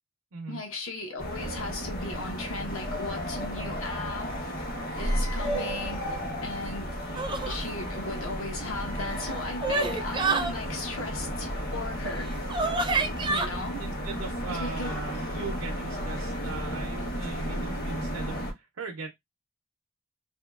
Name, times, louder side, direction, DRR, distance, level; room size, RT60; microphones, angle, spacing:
voice 1, 0.5-4.3 5.0-6.2 6.4-12.4 13.3-13.8 14.5-15.0 17.0-17.1, left 2 dB, 80° left, 0.9 m, -37 dB
sound 1, 1.2-18.5, equal, 50° left, 1.1 m, -33 dB
sound 2, 7.2-7.6 9.0-10.5 12.0-12.1 12.5-13.5, right 3 dB, 25° right, 0.4 m, -28 dB
voice 2, 13.8-19.1, right 4 dB, 80° right, 0.5 m, -38 dB
2.7 x 2.7 x 2.3 m
head